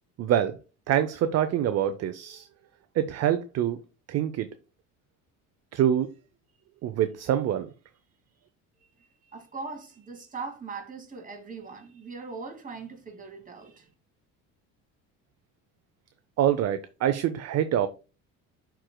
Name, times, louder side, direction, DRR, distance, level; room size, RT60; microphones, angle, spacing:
voice 1, 0.2-0.6 0.9-2.5 3.0-3.8 4.1-4.5 5.7-6.1 6.8-7.7 16.4-17.9, right 10 dB, 45° right, 0.6 m, -25 dB
voice 2, 9.2-13.9, right 4 dB, 20° right, 2.2 m, -40 dB
11.5 x 4.6 x 2.2 m
cardioid pair, 110°, 36 cm